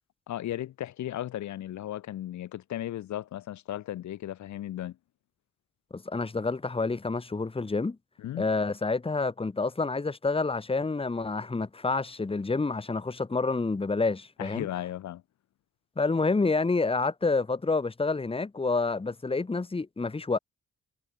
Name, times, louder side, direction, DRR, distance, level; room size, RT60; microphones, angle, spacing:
voice 1, 0.3-5.0 8.2-8.5 14.4-15.2, left 12 dB, 70° left, 1.3 m, -35 dB
voice 2, 5.9-8.0 8.4-14.7 16.0-20.4, left 3 dB, 20° left, 1.8 m, -28 dB
cardioid pair, 90°, 30 cm